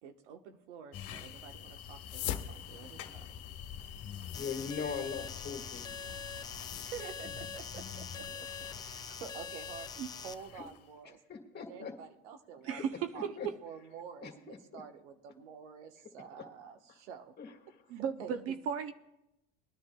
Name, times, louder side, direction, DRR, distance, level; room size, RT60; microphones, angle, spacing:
voice 1, 0.0-3.3 6.8-8.5 8.8-9.9 10.2-11.2 11.5-12.8 13.1-13.3 13.6-17.4 17.9-18.6, right 7 dB, 90° right, 7 dB, 1.2 m, -49 dB
sound 1, 0.9-10.9, left 9 dB, 45° left, 1.5 m, -47 dB
sound 2, 1.9-7.2, left 12 dB, 75° left, 1.0 m, -45 dB
voice 2, 4.3-5.9 10.6-10.7 11.3-11.9 12.7-12.8 13.1-13.5 14.2-14.8 17.4-17.8, left 6 dB, 30° left, 4 dB, 1.9 m, -41 dB
sound 3, 4.3-10.3, left 6 dB, 15° left, 0.3 m, -44 dB
voice 3, 12.6-13.4 17.9-18.9, right 7 dB, 45° right, 9 dB, 0.7 m, -35 dB
23.0 x 10.0 x 2.3 m, 0.91 s
supercardioid pair, 115°, 34 cm